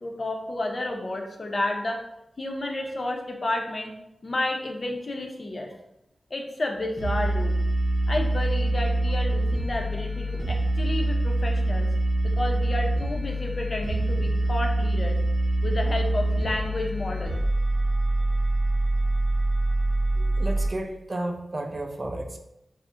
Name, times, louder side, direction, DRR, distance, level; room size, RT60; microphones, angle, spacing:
voice 1, 0.0-2.0 2.4-3.9 4.2-5.7 6.3-7.5 8.1-11.9 12.2-15.2 15.6-17.4, left 1 dB, 45° left, 2 dB, 0.5 m, -31 dB
sound 1, 7.0-20.7, right 1 dB, 65° right, 0.7 m, -25 dB
voice 2, 20.1-22.4, right 1 dB, 45° right, 4 dB, 0.3 m, -33 dB
2.4 x 2.0 x 3.6 m, 0.85 s
wide cardioid pair, 70°, 0 cm